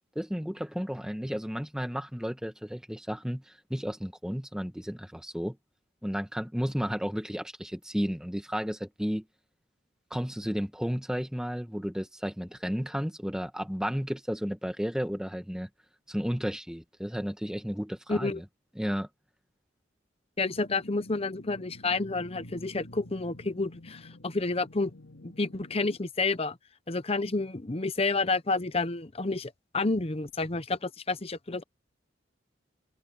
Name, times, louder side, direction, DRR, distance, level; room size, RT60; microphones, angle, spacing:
voice 1, 0.1-5.6 6.0-9.2 10.1-15.7 16.1-18.4 18.8-19.1, equal, 5° right, 1.4 m, -33 dB
voice 2, 18.1-18.4 20.4-24.9 25.2-26.6 26.9-31.6, left 3 dB, 30° left, 0.9 m, -30 dB
sound 1, 20.4-26.0, left 1 dB, 80° left, 3.7 m, -49 dB
head